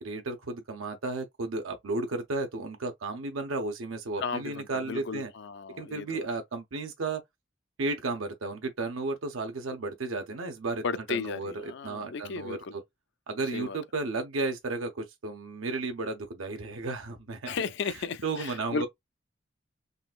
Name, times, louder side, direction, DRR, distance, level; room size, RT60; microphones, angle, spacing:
voice 1, 0.0-5.3 5.8-7.2 7.8-12.8 13.3-17.6 18.2-18.9, right 3 dB, 90° right, 0.7 m, -33 dB
voice 2, 4.2-6.2 10.8-12.7 13.5-13.8 17.5-18.9, left 4 dB, 60° left, 0.4 m, -34 dB
3.9 x 2.4 x 2.4 m
head